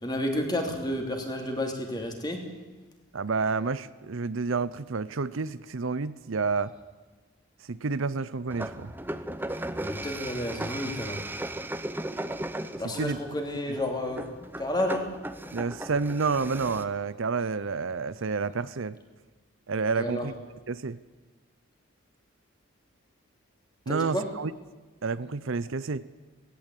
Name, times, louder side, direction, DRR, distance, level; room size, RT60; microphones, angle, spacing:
voice 1, 0.0-2.5 9.8-11.2 12.8-15.1 20.0-20.3 23.9-24.3, left 1 dB, 20° left, 3 dB, 2.9 m, -31 dB
voice 2, 3.1-6.7 7.7-8.9 12.9-13.2 15.5-19.0 19.7-20.3 20.7-21.0 23.9-24.5 25.0-26.1, right 4 dB, 65° right, 16 dB, 0.6 m, -29 dB
sound 1, 8.5-16.8, right 1 dB, 10° right, 0.8 m, -36 dB
18.0 x 17.5 x 8.4 m, 1.3 s
head